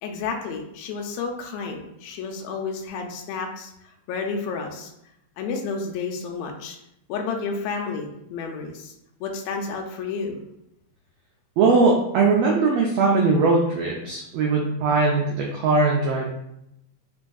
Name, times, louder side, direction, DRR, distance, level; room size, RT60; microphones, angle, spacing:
voice 1, 0.0-4.9 5.4-6.8 7.1-8.9 9.2-10.4, left 4 dB, 80° left, 2 dB, 1.7 m, -31 dB
voice 2, 11.6-16.3, right 3 dB, 85° right, -1 dB, 1.4 m, -20 dB
4.1 x 3.5 x 2.3 m, 0.81 s
omnidirectional pair, 3.5 m